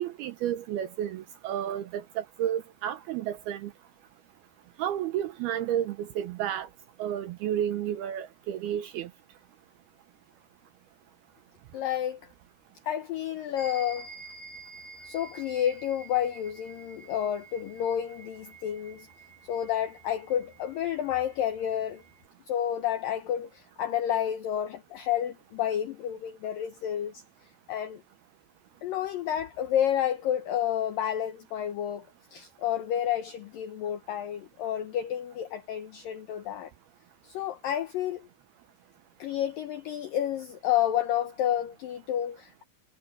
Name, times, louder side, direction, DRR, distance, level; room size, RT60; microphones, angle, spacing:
voice 1, 0.0-3.7 4.8-6.7 7.0-9.1, right 10 dB, 80° right, 2.4 m, -31 dB
voice 2, 11.7-12.2 12.9-14.1 15.0-19.1 19.5-22.0 22.5-27.2 27.7-28.0 28.8-32.1 32.3-36.7 37.2-38.3 39.2-42.6, left 10 dB, 85° left, 2.0 m, -30 dB
sound 1, 13.6-22.3, right 3 dB, 65° left, 6.2 m, -49 dB
omnidirectional pair, 5.3 m